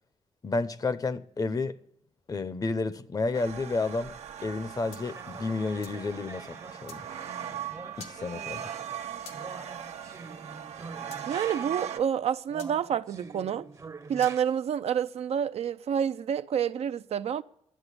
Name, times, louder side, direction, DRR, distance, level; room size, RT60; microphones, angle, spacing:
voice 1, 0.4-1.8 2.3-4.1 4.4-7.0 8.1-8.7, left 3 dB, 35° left, 0.7 m, -31 dB
sound 1, 3.3-12.0, right 9 dB, 85° right, 0.9 m, -40 dB
sound 2, 4.9-6.0 6.9-7.0 8.0-8.2 9.3-9.4 11.1-11.2 12.6-12.7 14.2-14.4, left 5 dB, 80° left, 1.7 m, -48 dB
sound 3, 5.0-12.0 12.5-14.4, right 3 dB, 30° right, 0.8 m, -46 dB
voice 2, 11.3-13.7 14.1-17.4, right 8 dB, 70° right, 0.5 m, -28 dB
11.0 x 7.8 x 9.9 m
cardioid pair, 100°, 11 cm